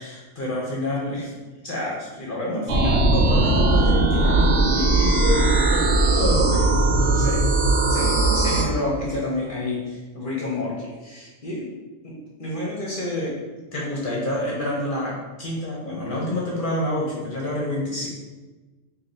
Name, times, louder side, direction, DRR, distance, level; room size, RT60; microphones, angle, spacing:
voice 1, 0.0-1.3 1.6-7.4 7.9-11.7 12.0-12.1 12.4-13.4 13.7-18.1, left 1 dB, 45° left, -4 dB, 0.8 m, -28 dB
sound 1, 2.7-8.6, right 2 dB, 65° right, 0.8 m, -19 dB
3.1 x 2.8 x 4.0 m, 1.2 s
omnidirectional pair, 1.4 m